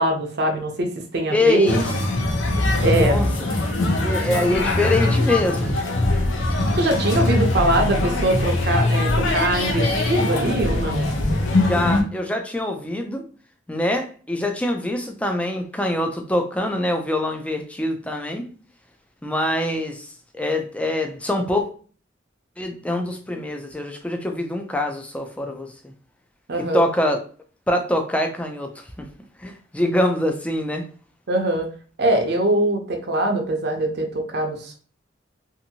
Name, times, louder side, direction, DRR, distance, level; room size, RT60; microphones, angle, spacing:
voice 1, 0.0-1.8 2.8-3.2 6.7-11.1 26.5-26.9 31.3-31.7 32.0-34.7, right 1 dB, 55° right, 3 dB, 0.6 m, -22 dB
voice 2, 1.3-1.9 2.9-3.3 3.9-5.7 11.7-13.2 13.7-18.5 19.2-20.1 20.3-21.6 22.6-25.7 26.6-27.2 27.7-28.7 29.0-29.1 29.4-30.8, left 1 dB, 5° left, 4 dB, 0.3 m, -24 dB
sound 1, 1.7-12.0, left 2 dB, 85° left, 0.7 m, -21 dB
2.7 x 2.6 x 2.7 m, 0.42 s
head